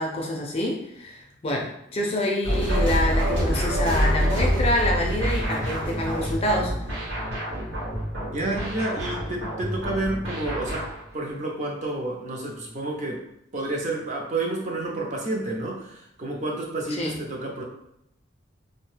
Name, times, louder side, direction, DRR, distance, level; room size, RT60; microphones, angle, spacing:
voice 1, 0.0-6.7 16.9-17.2, left 1 dB, 30° left, 0 dB, 0.4 m, -27 dB
sound 1, 2.4-11.0, equal, 70° right, 1.2 m, -26 dB
voice 2, 8.3-13.2 13.5-17.6, right 2 dB, 35° right, -2 dB, 0.5 m, -30 dB
2.6 x 2.2 x 3.2 m, 0.78 s
head